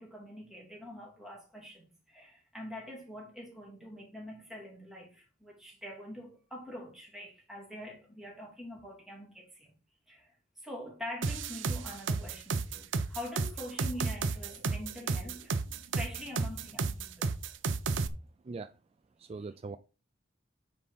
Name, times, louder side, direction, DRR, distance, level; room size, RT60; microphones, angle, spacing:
voice 1, 0.0-9.7 10.1-10.3 10.6-15.5 16.0-17.3, left 1 dB, ahead, 3.0 m, -44 dB
sound 1, 11.2-18.1, right 4 dB, 85° right, 0.7 m, -32 dB
voice 2, 19.2-19.8, right 4 dB, 30° right, 0.3 m, -41 dB
9.1 x 4.2 x 5.3 m
head